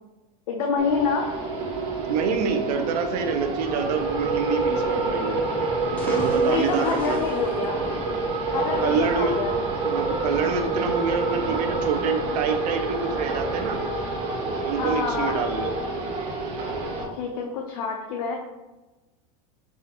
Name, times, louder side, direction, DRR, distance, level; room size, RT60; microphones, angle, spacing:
voice 1, 0.5-1.3 6.5-7.8 8.5-9.6 14.8-15.4 17.1-18.3, left 5 dB, 70° left, 1 dB, 0.6 m, -27 dB
sound 1, 0.8-17.0, right 3 dB, 30° right, 0.7 m, -27 dB
voice 2, 2.1-5.4 6.1-7.2 8.8-9.4 9.8-13.8 14.6-15.7, right 6 dB, 80° right, 6 dB, 0.6 m, -27 dB
sound 2, 5.8-8.4, equal, 10° left, 0.6 m, -38 dB
5.5 x 2.4 x 2.8 m, 1.1 s
supercardioid pair, 160°, 20 cm